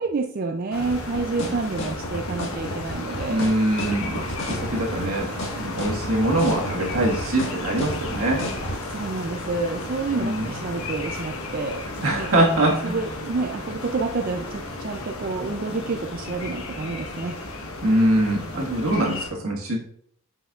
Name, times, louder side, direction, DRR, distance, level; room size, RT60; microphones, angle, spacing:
voice 1, 0.0-3.4 8.9-12.5 12.8-17.4, right 3 dB, 40° right, 4 dB, 0.4 m, -29 dB
sound 1, 0.7-19.3, left 2 dB, 75° left, 1.3 m, -34 dB
sound 2, 0.9-8.8, equal, 60° left, 1.6 m, -31 dB
voice 2, 3.3-8.4 10.2-10.5 12.0-13.0 17.8-19.9, right 1 dB, 75° right, -1 dB, 1.7 m, -23 dB
8.0 x 5.5 x 2.4 m, 0.66 s
head